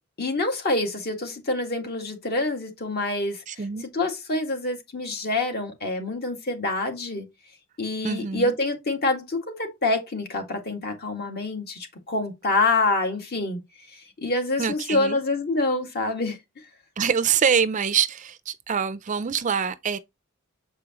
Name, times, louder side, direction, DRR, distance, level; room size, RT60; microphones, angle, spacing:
voice 1, 0.2-3.4 3.9-7.3 7.8-13.6 13.9-16.4, left 2 dB, 50° left, 2.0 m, -26 dB
voice 2, 3.5-3.9 8.0-8.5 14.6-15.2 17.0-20.0, right 7 dB, 35° right, 0.5 m, -25 dB
7.5 x 4.8 x 3.0 m
head